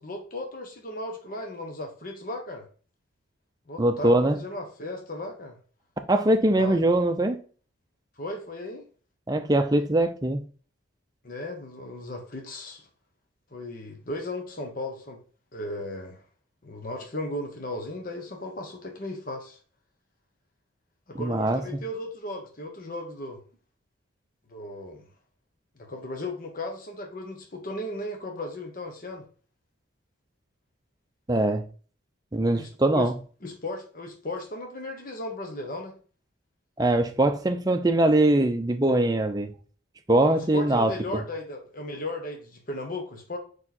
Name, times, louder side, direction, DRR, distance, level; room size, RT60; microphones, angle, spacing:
voice 1, 0.0-2.6 3.7-5.6 6.6-7.1 8.2-8.8 11.2-12.9 13.5-15.2 15.5-16.2 16.6-19.6 21.1-23.4 24.5-25.1 25.8-29.3 32.5-33.1 33.4-35.9 40.3-43.4, left 1 dB, 45° left, 1.1 m, -36 dB
voice 2, 3.8-4.4 6.1-7.4 9.3-10.4 21.1-21.8 31.3-31.6 32.3-33.1 36.8-39.5 40.1-40.9, right 1 dB, 20° right, 0.6 m, -22 dB
4.8 x 4.7 x 4.2 m
head